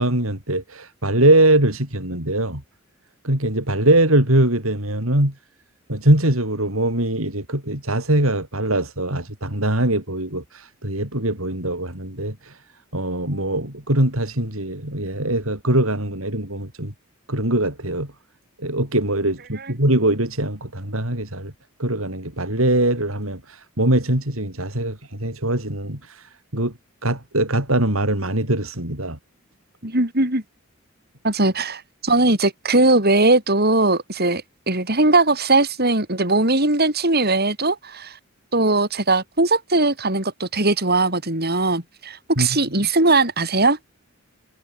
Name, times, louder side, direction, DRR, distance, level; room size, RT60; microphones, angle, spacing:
voice 1, 0.0-2.6 3.2-5.3 5.9-12.6 12.9-16.9 17.3-18.1 18.6-21.5 21.8-26.7 27.0-29.2 42.4-42.5, right 1 dB, 85° right, 7.3 m, -22 dB
voice 2, 29.8-30.4 31.2-38.2 38.5-43.8, right 2 dB, 50° right, 7.5 m, -19 dB
head